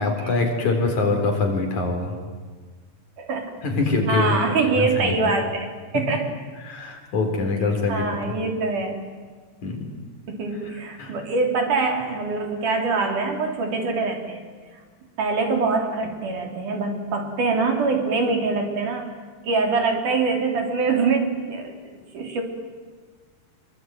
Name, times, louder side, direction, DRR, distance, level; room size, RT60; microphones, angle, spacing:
voice 1, 0.0-2.2 3.6-5.3 6.6-8.1 9.6-9.8 11.0-11.1, left 3 dB, 60° left, 3 dB, 5.4 m, -24 dB
voice 2, 3.2-3.5 4.1-5.7 5.9-6.3 7.9-9.0 10.3-14.4 15.2-19.1 19.4-21.7 22.1-22.4, right 4 dB, 65° right, 3 dB, 4.9 m, -24 dB
26.0 x 23.0 x 9.3 m, 1.5 s
omnidirectional pair, 3.9 m